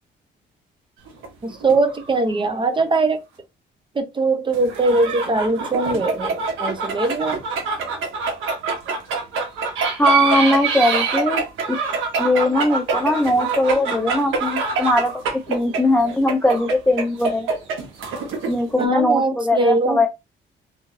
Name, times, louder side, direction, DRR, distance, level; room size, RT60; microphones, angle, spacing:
sound 1, 1.1-2.5 2.9-3.0 4.5-18.8, right 4 dB, 85° right, 1.2 m, -25 dB
voice 1, 1.4-3.2 3.9-7.4 18.8-20.0, right 3 dB, 25° right, 0.8 m, -21 dB
voice 2, 10.0-11.4 12.2-15.1 15.5-17.5 18.4-20.1, left 1 dB, 5° left, 0.5 m, -19 dB
3.5 x 3.1 x 2.6 m
cardioid pair, 90°, 20 cm